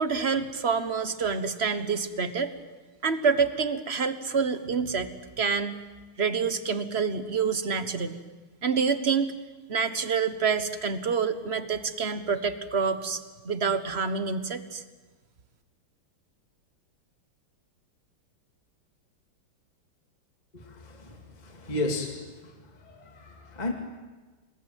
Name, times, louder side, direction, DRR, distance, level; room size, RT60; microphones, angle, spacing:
voice 1, 0.0-2.5 3.0-5.1 5.4-5.8 6.2-8.2 8.6-9.3 9.7-13.2 13.4-14.8, right 5 dB, 35° right, 10 dB, 1.4 m, -27 dB
voice 2, 20.5-22.5 22.8-23.7, left 2 dB, 20° left, 3 dB, 2.4 m, -34 dB
27.5 x 21.0 x 9.1 m, 1.3 s
omnidirectional pair, 2.4 m